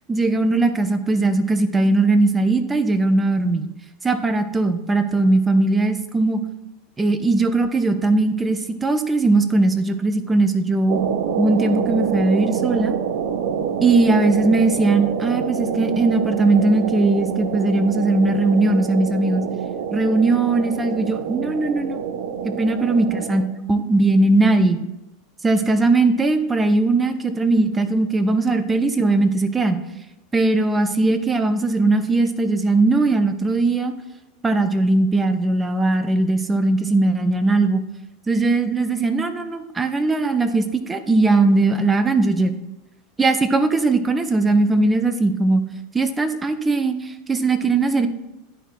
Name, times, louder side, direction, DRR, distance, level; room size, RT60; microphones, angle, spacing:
voice 1, 0.1-3.6 4.0-6.4 7.0-11.0 11.4-13.0 13.8-19.4 19.9-22.0 22.4-23.4 23.7-24.8 25.4-29.8 30.3-33.9 34.4-37.8 38.3-42.5 43.2-45.6 45.9-48.1, right 2 dB, 15° right, 9 dB, 0.5 m, -19 dB
sound 1, 10.9-23.4, right 7 dB, 60° right, 0.6 m, -26 dB
11.0 x 4.5 x 2.5 m, 0.96 s
figure-of-eight pair, 85°, 0 cm